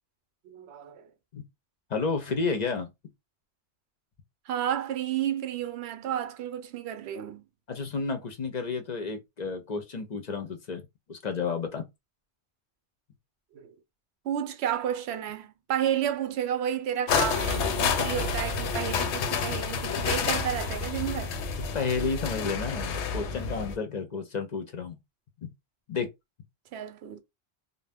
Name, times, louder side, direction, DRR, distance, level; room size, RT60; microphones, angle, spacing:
voice 1, 0.4-1.1 4.5-7.4 13.5-13.7 14.2-21.3 26.7-27.2, right 10 dB, 75° right, 0.8 m, -31 dB
voice 2, 1.9-2.9 7.7-10.8 11.1-11.8 21.7-25.0 25.4-25.5 25.9-26.1, left 4 dB, 45° left, 0.6 m, -31 dB
sound 1, 17.1-23.8, left 5 dB, 85° left, 0.9 m, -29 dB
2.5 x 2.1 x 3.4 m
omnidirectional pair, 1.1 m